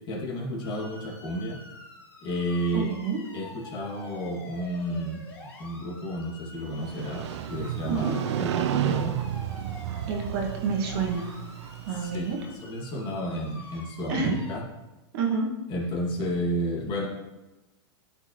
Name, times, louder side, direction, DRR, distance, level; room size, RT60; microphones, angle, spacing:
voice 1, 0.1-1.6 2.2-2.9 3.3-5.2 5.6-9.3 11.9-14.6 15.7-17.1, equal, 30° left, -3 dB, 2.0 m, -31 dB
sound 1, 0.6-14.6, left 2 dB, 15° left, 2.4 m, -47 dB
voice 2, 2.7-3.2 7.9-8.1 10.1-11.3 11.9-12.4 14.1-14.4 15.1-15.5, right 4 dB, 60° right, 0 dB, 1.7 m, -28 dB
Motorcycle, 6.7-12.6, right 11 dB, 75° right, 0.4 m, -32 dB
12.5 x 4.5 x 3.0 m, 1.1 s
hypercardioid pair, 130°, 15 cm